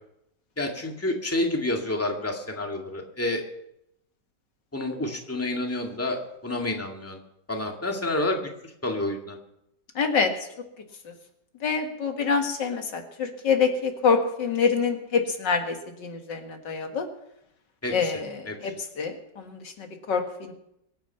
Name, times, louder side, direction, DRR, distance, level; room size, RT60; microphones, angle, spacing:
voice 1, 0.6-3.4 4.7-7.2 7.5-9.4 17.8-18.1 18.5-18.7, left 2 dB, 10° left, 2 dB, 1.9 m, -29 dB
voice 2, 10.0-10.3 11.6-15.7 16.0-17.0 17.9-18.7 19.0-20.5, left 5 dB, 90° left, 4 dB, 2.5 m, -26 dB
24.0 x 9.0 x 5.7 m, 0.79 s
omnidirectional pair, 1.9 m